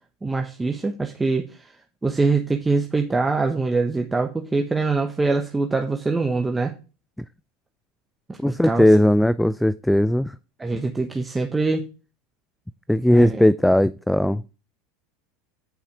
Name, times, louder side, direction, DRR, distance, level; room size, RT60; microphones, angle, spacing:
voice 1, 0.2-1.6 2.0-6.7 8.3-8.8 10.6-11.9 13.1-13.4, right 3 dB, 15° right, 3 dB, 1.1 m, -23 dB
voice 2, 8.4-10.3 12.9-14.4, left 1 dB, 5° left, 16 dB, 0.4 m, -18 dB
9.2 x 5.6 x 4.9 m, 0.33 s
hypercardioid pair, 95°, 0 cm